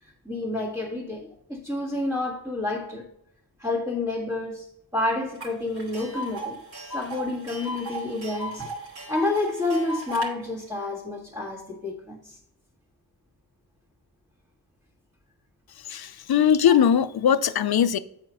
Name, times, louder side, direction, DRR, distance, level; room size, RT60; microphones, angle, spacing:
voice 1, 0.0-3.1 3.6-4.7 4.9-6.6 6.8-12.4 16.7-16.8, left 2 dB, 10° right, 1.8 m, -29 dB
Tick, 5.4-5.5 5.8-10.3, right 1 dB, 70° right, 2.8 m, -35 dB
voice 2, 15.9-18.0, left 8 dB, 65° left, 0.6 m, -20 dB
8.5 x 4.4 x 5.4 m
wide cardioid pair, 90°, 39 cm